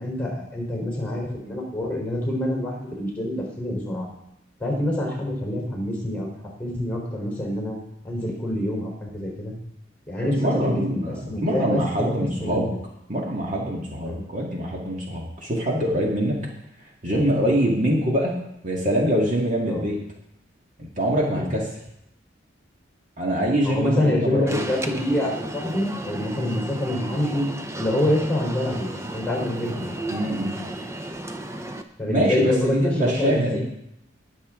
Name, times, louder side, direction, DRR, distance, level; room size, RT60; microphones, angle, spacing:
voice 1, 0.0-4.1 4.6-6.3 6.6-7.8 8.0-9.5 10.1-12.1 12.4-12.7 14.1-14.2 19.6-19.9 23.6-27.5 27.8-30.0 32.0-33.6, left 1 dB, 10° left, -3 dB, 3.9 m, -26 dB
voice 2, 10.4-12.7 13.1-16.4 17.0-18.3 18.6-20.0 20.8-21.6 23.2-24.6 30.1-30.5 32.1-33.6, right 1 dB, 40° right, -2 dB, 2.1 m, -24 dB
Alarm, 24.5-31.8, right 1 dB, 15° right, 0.7 m, -34 dB
20.0 x 7.2 x 3.8 m, 0.79 s
head